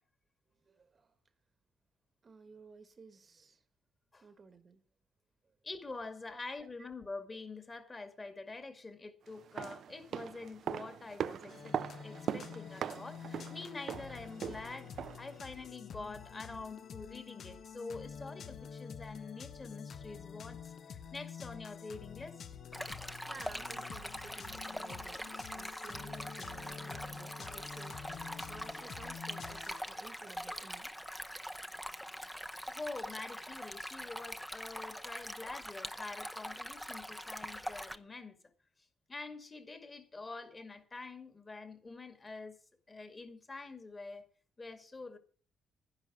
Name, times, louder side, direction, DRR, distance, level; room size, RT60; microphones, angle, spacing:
voice 1, 0.6-1.2 2.2-3.6 4.2-4.8 5.4-5.5 6.3-6.4 22.9-30.9, right 4 dB, 35° right, 1.3 m, -55 dB
voice 2, 5.6-11.8 12.0-22.4 32.6-38.4 39.1-42.6 42.9-44.3 44.6-45.2, left 3 dB, 25° left, 2.2 m, -46 dB
sound 1, 9.3-15.4 15.6-15.7, right 9 dB, 65° right, 0.6 m, -41 dB
sound 2, 11.5-29.8, left 7 dB, 60° left, 1.1 m, -48 dB
Stream, 22.7-38.0, equal, 5° left, 0.9 m, -43 dB
11.0 x 10.5 x 6.3 m
cardioid pair, 90°, 0 cm